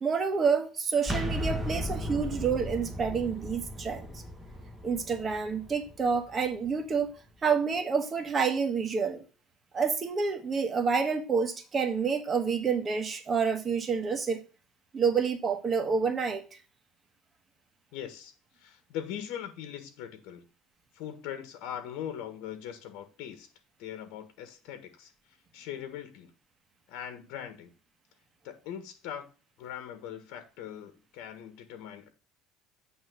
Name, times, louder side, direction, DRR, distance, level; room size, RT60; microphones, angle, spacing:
voice 1, 0.0-4.2 4.8-7.1 7.4-9.2 9.7-14.4 14.9-16.4, right 5 dB, 25° right, 1.2 m, -28 dB
sound 1, 1.0-6.7, left 1 dB, 5° right, 1.2 m, -36 dB
voice 2, 17.9-20.5 20.9-23.5 23.8-25.1 25.5-26.3 26.9-27.7 28.4-29.3 29.6-32.1, left 10 dB, 70° left, 1.5 m, -41 dB
8.7 x 3.1 x 6.4 m
cardioid pair, 140°, 0 cm